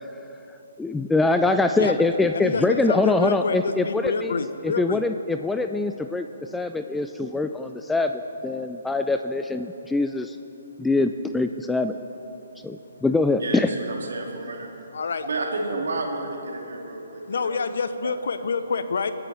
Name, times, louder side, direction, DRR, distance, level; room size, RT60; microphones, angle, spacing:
voice 1, 0.8-4.3 4.6-6.3 6.5-8.1 8.4-10.4 10.8-12.0 12.6-13.7, left 3 dB, 5° left, 7 dB, 0.3 m, -23 dB
voice 2, 2.3-5.0 14.9-15.3 17.3-19.1, left 4 dB, 60° left, 11 dB, 0.8 m, -27 dB
voice 3, 13.4-14.7 15.2-17.6 18.0-18.1, right 2 dB, 65° right, 0 dB, 2.4 m, -31 dB
26.5 x 10.0 x 3.4 m, 3.0 s
figure-of-eight pair, 135°, 0 cm